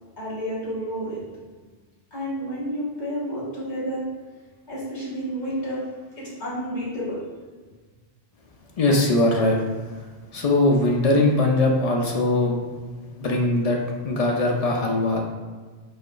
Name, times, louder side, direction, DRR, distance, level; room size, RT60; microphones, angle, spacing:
voice 1, 0.1-1.2 2.1-4.1 4.7-5.8 6.2-7.2, equal, 40° left, -11 dB, 1.6 m, -30 dB
voice 2, 8.8-9.6 10.3-12.6 13.1-15.2, left 2 dB, 60° left, 0 dB, 0.4 m, -21 dB
4.1 x 2.8 x 2.4 m, 1.4 s
omnidirectional pair, 1.1 m